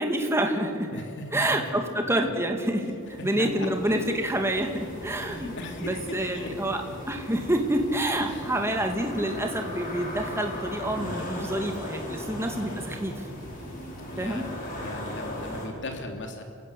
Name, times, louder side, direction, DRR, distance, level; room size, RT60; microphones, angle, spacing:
voice 1, 0.0-0.9 1.3-5.5 5.8-6.8 7.1-13.1 14.2-14.4, right 1 dB, 10° right, 3 dB, 2.2 m, -27 dB
voice 2, 0.9-2.3 3.3-3.7 5.2-6.5 8.2-8.5 14.1-16.4, left 1 dB, 55° left, 4 dB, 2.9 m, -38 dB
sound 1, 3.0-15.7, left 1 dB, 40° left, 5.0 m, -38 dB
29.0 x 16.0 x 8.4 m, 2.4 s
head